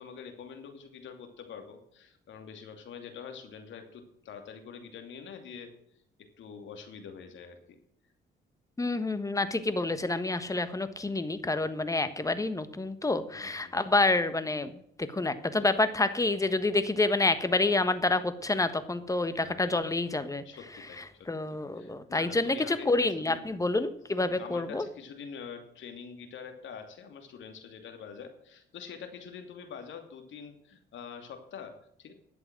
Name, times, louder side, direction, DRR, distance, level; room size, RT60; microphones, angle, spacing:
voice 1, 0.0-5.7 6.2-7.8 13.3-13.8 19.4-19.6 20.4-21.3 21.8-22.9 23.3-23.5 24.2-32.1, left 6 dB, 70° left, 6 dB, 2.8 m, -45 dB
voice 2, 8.8-20.4 21.0-24.9, left 2 dB, 15° left, 12 dB, 1.4 m, -28 dB
11.5 x 8.0 x 7.6 m, 0.71 s
cardioid pair, 90°, 20 cm